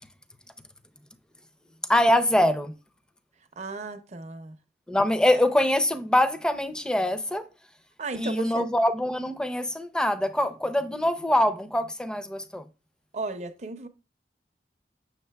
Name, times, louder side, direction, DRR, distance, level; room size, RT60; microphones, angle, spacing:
voice 1, 1.9-2.7 4.9-7.4 8.1-12.6, left 1 dB, 5° left, 0.4 m, -24 dB
voice 2, 3.6-4.5 8.0-8.7 13.1-13.9, right 3 dB, 40° right, 0.6 m, -35 dB
6.8 x 6.5 x 2.2 m
head